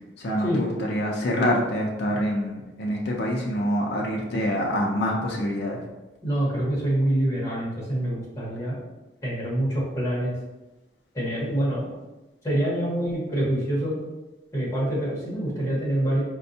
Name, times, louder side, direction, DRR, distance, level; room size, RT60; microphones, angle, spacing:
voice 1, 0.2-5.8, equal, 65° left, -2 dB, 0.5 m, -26 dB
voice 2, 6.2-8.8 9.2-10.3 11.1-11.9 12.4-14.0 14.5-16.2, right 1 dB, 15° left, -7 dB, 1.2 m, -26 dB
4.2 x 2.2 x 2.7 m, 1.1 s
head